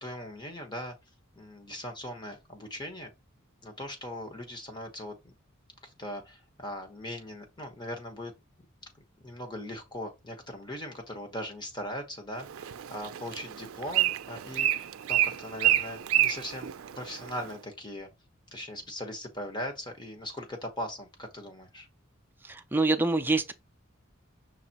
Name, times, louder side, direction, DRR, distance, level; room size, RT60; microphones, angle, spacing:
voice 1, 0.0-1.0 1.4-3.1 3.6-5.3 5.8-8.3 9.2-18.1 18.5-21.9, left 1 dB, 20° left, 1.1 m, -39 dB
Bird, 12.4-17.5, right 12 dB, 90° right, 0.4 m, -29 dB
voice 2, 22.5-23.5, right 2 dB, 10° right, 0.4 m, -26 dB
5.8 x 3.1 x 2.9 m
head